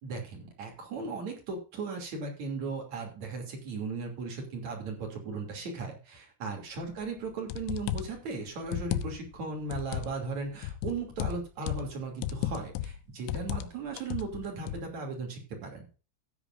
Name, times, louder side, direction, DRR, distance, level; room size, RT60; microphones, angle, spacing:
voice 1, 0.0-15.9, right 4 dB, 40° right, 2 dB, 3.5 m, -37 dB
sound 1, 7.0-7.1 7.5-8.2 8.7-9.4 9.7-10.2 10.6-11.9 12.2-13.0 13.3-13.7 14.0-14.8, left 12 dB, 80° left, 2.9 m, -34 dB
15.5 x 10.0 x 2.6 m, 0.35 s
omnidirectional pair, 6.0 m